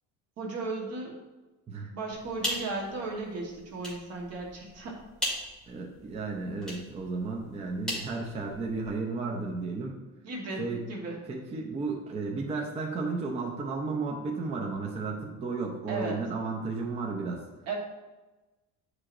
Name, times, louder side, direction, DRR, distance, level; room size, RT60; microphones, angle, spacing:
voice 1, 0.4-1.2 1.9-5.0 10.2-11.2 15.9-16.2 17.7-17.8, right 3 dB, 50° right, -1 dB, 1.2 m, -35 dB
sound 1, 2.1-8.9, equal, ahead, 1.8 m, -39 dB
voice 2, 5.7-10.0 10.6-10.8 11.1-17.4, right 3 dB, 20° right, -1 dB, 0.5 m, -33 dB
9.6 x 4.8 x 2.5 m, 1.1 s
cardioid pair, 175°, 34 cm